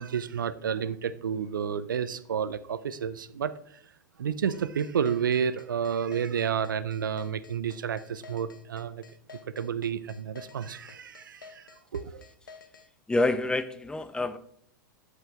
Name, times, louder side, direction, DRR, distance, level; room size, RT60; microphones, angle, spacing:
voice 1, 0.0-3.8 4.2-9.0 9.6-12.2, right 7 dB, 80° right, 15 dB, 0.5 m, -31 dB
sound 1, 4.5-12.9, left 5 dB, 85° left, 1.1 m, -50 dB
voice 2, 13.1-14.4, left 2 dB, 10° left, 12 dB, 0.6 m, -27 dB
12.0 x 5.0 x 3.5 m, 0.66 s
hypercardioid pair, 100°, 11 cm